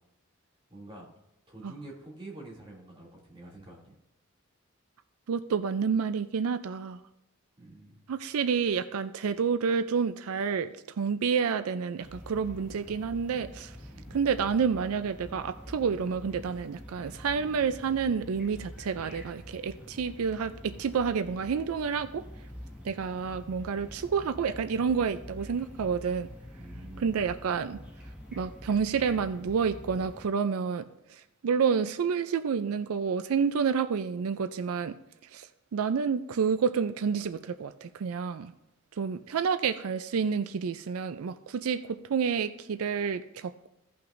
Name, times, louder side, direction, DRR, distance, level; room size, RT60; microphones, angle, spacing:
voice 1, 0.7-1.1 1.5-3.9 7.6-8.1 13.9-14.2 26.6-27.3, right 2 dB, 25° right, -4 dB, 2.6 m, -47 dB
voice 2, 5.3-7.0 8.1-13.7 14.1-22.2 22.8-26.3 27.0-27.8 28.3-30.8 31.4-34.9 35.3-35.5 35.7-38.5 39.0-43.7, right 6 dB, 85° right, 10 dB, 0.4 m, -29 dB
sound 1, 12.0-30.3, equal, 5° right, 1.6 m, -46 dB
16.0 x 5.9 x 2.6 m, 0.90 s
head